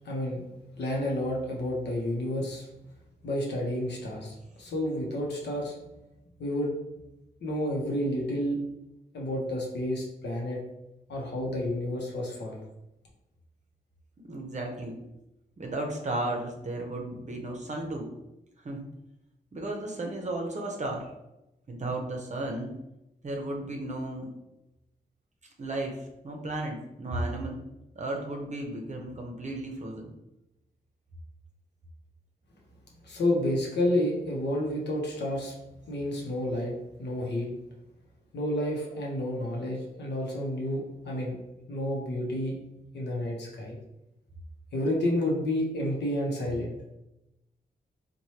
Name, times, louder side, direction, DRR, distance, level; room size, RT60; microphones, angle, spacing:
voice 1, 0.0-0.4 0.8-2.7 3.2-5.8 6.4-6.7 7.4-8.6 9.1-10.6 11.1-12.6 33.0-35.5 35.9-36.7 37.0-37.5 38.3-41.3 41.7-42.5 42.9-43.8 44.7-46.7, left 1 dB, 85° left, -2 dB, 0.7 m, -30 dB
voice 2, 14.2-15.0 15.6-18.1 18.6-18.9 19.5-21.1 21.7-22.8 23.2-24.3 25.6-27.6 27.9-30.1, right 2 dB, 45° right, 1 dB, 0.6 m, -34 dB
3.1 x 2.2 x 2.8 m, 0.91 s
cardioid pair, 65°, 17 cm